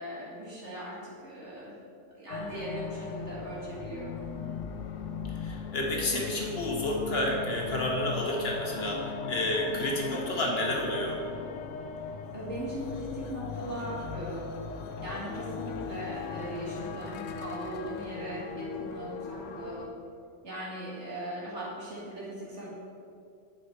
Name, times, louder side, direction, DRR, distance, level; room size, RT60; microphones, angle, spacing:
voice 1, 0.0-1.8 2.1-4.3 12.3-14.5 15.0-19.9 20.4-22.7, right 1 dB, 65° right, -7 dB, 2.4 m, -39 dB
sound 1, 2.3-19.9, left 5 dB, 90° left, 0.9 m, -38 dB
voice 2, 5.4-11.2, left 1 dB, 55° left, -1 dB, 1.3 m, -30 dB
9.7 x 5.0 x 4.3 m, 2.5 s
omnidirectional pair, 1.2 m